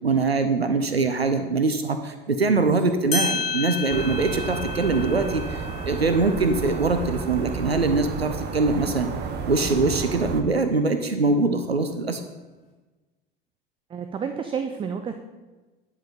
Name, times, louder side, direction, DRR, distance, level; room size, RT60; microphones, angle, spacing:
voice 1, 0.0-9.1 9.5-12.2, right 3 dB, 90° right, 8 dB, 0.5 m, -23 dB
sound 1, 2.8-2.9 3.1-8.2, left 3 dB, 20° left, 3.0 m, -33 dB
sound 2, 3.9-10.4, right 5 dB, 35° right, 1.0 m, -31 dB
voice 2, 13.9-15.2, right 6 dB, 15° right, 7 dB, 0.5 m, -30 dB
10.5 x 4.6 x 5.1 m, 1.2 s
figure-of-eight pair, 75°, 30 cm